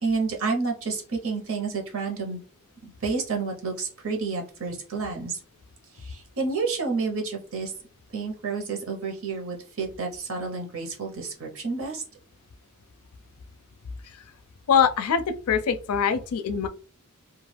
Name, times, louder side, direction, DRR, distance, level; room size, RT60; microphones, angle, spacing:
voice 1, 0.0-2.4 2.8-5.4 5.9-7.7 8.1-12.0, right 4 dB, 65° right, 0.9 m, -30 dB
voice 2, 14.7-16.7, left 7 dB, 75° left, 0.4 m, -23 dB
2.3 x 2.3 x 3.2 m
head